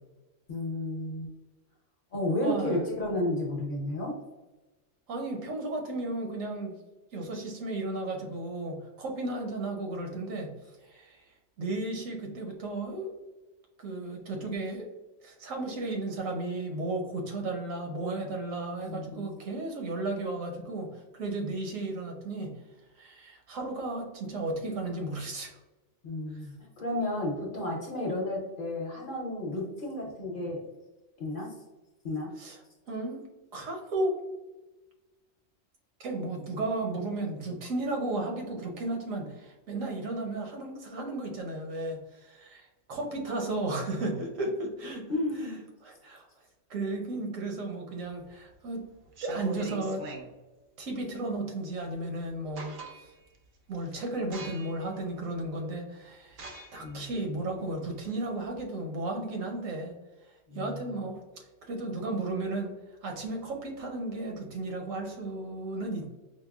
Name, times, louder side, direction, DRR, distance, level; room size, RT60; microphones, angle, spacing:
voice 1, 0.5-1.3 2.1-4.1 18.8-19.4 26.0-30.6 31.2-31.6 32.0-32.3 45.1-45.6 56.8-57.1 60.5-60.9, left 1 dB, 50° left, -1 dB, 0.7 m, -32 dB
voice 2, 2.4-2.7 5.1-6.7 7.1-10.5 10.9-11.2 11.6-13.1 13.8-14.9 15.2-22.5 23.0-25.6 32.4-32.6 32.9-33.2 33.5-34.2 36.0-45.1 45.4-45.5 45.8-46.3 46.7-48.8 49.2-50.1 50.8-52.8 53.0-53.1 53.7-59.9 60.5-61.2 61.7-62.7 63.0-66.1, right 2 dB, 85° right, 2 dB, 1.2 m, -34 dB
sound 1, 48.1-48.5 49.0-50.3 51.9-52.0 52.3-53.2 53.7-53.9 54.3-54.9 55.4-55.5 56.3-58.6, right 2 dB, 55° right, 0.6 m, -42 dB
5.1 x 2.0 x 2.3 m, 1.1 s
omnidirectional pair, 1.3 m